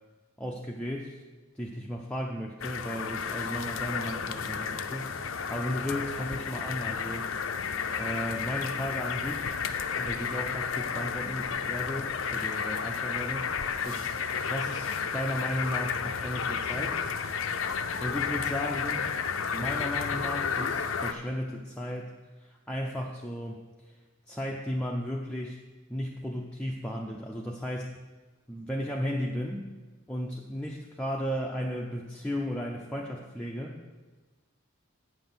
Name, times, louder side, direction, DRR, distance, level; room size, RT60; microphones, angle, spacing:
voice 1, 0.4-1.2 1.6-7.3 8.0-9.5 9.9-13.5 13.8-17.0 17.6-19.1 19.5-24.0 24.3-25.6 25.9-28.0 28.5-29.7 30.1-33.8, equal, 5° left, -2 dB, 0.6 m, -35 dB
sound 1, 2.6-21.1, left 6 dB, 70° left, 0.6 m, -32 dB
8.6 x 5.9 x 7.1 m, 1.3 s
head